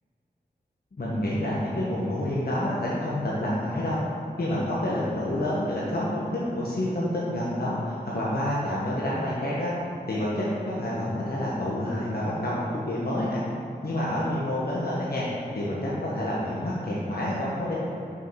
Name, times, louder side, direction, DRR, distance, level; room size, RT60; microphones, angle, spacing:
voice 1, 0.9-4.0 4.4-6.2 6.5-9.7 10.1-13.4 13.8-15.3 15.5-17.7, left 1 dB, 65° left, -7 dB, 1.4 m, -28 dB
6.5 x 5.7 x 5.9 m, 2.9 s
wide cardioid pair, 85°, 17 cm